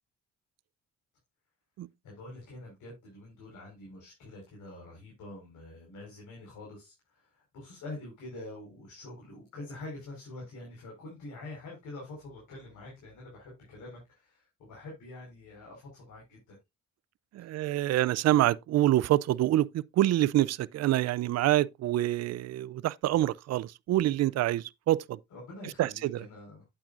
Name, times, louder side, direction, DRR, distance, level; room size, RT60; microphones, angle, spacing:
voice 1, 2.0-16.6 17.4-17.5 25.3-26.7, left 2 dB, 75° left, 4.8 m, -46 dB
voice 2, 17.3-25.2 25.8-26.3, right 14 dB, 60° right, 0.5 m, -26 dB
8.8 x 8.5 x 2.5 m
cardioid pair, 90°, 30 cm